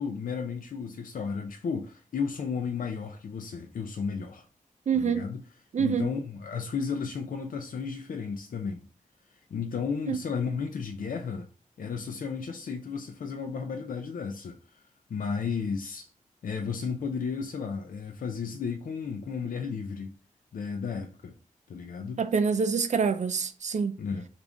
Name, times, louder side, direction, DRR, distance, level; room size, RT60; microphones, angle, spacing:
voice 1, 0.0-4.4 4.9-5.4 5.8-8.8 9.5-11.5 11.8-14.8 15.1-16.1 16.4-20.1 20.5-21.3 21.7-22.2 24.0-24.3, left 5 dB, 80° left, 0.4 m, -33 dB
voice 2, 4.9-5.2 5.7-6.1 10.1-10.2 22.2-23.9, right 6 dB, 60° right, 0.4 m, -26 dB
3.4 x 2.5 x 3.7 m
wide cardioid pair, 105°, 14 cm